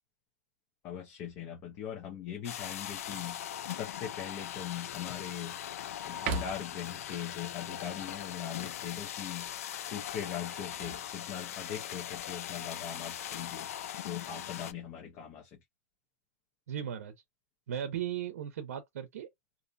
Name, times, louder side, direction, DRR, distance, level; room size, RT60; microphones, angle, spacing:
voice 1, 0.8-3.4 3.7-5.6 6.0-9.5 9.9-13.7 14.0-15.6, left 9 dB, 30° left, 0.6 m, -40 dB
sound 1, 2.4-14.7, left 11 dB, 75° left, 0.4 m, -40 dB
sound 2, 3.1-3.6 4.2-4.3 4.8-5.6 6.1-6.9 10.4-11.8 13.1-13.7, right 5 dB, 40° right, 0.5 m, -41 dB
voice 2, 16.7-17.1 17.7-19.3, right 9 dB, 80° right, 0.6 m, -36 dB
2.6 x 2.1 x 2.5 m
supercardioid pair, 150°, 8 cm